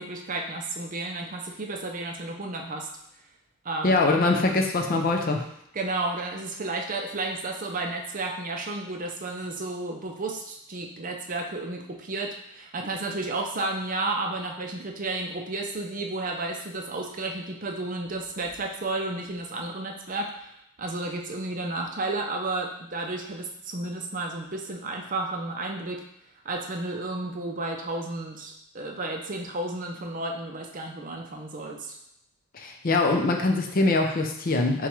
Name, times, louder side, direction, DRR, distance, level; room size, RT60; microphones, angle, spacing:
voice 1, 0.0-2.9 3.6-4.1 5.7-20.5 20.8-26.0 26.4-31.9, right 2 dB, 40° right, 2 dB, 0.5 m, -32 dB
voice 2, 3.8-5.4 32.5-34.9, left 2 dB, 40° left, 3 dB, 0.5 m, -23 dB
6.9 x 2.3 x 3.1 m, 0.77 s
head